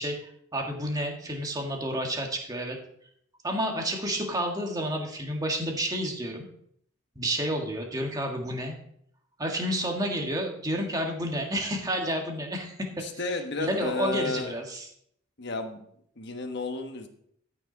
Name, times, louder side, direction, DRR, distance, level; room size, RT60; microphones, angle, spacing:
voice 1, 0.0-2.8 3.4-6.5 7.2-8.8 9.4-14.9, equal, 20° right, 1 dB, 1.7 m, -30 dB
voice 2, 13.0-14.5 15.4-15.8 16.2-17.1, left 2 dB, 60° left, 5 dB, 1.3 m, -32 dB
14.0 x 6.2 x 4.0 m, 0.67 s
head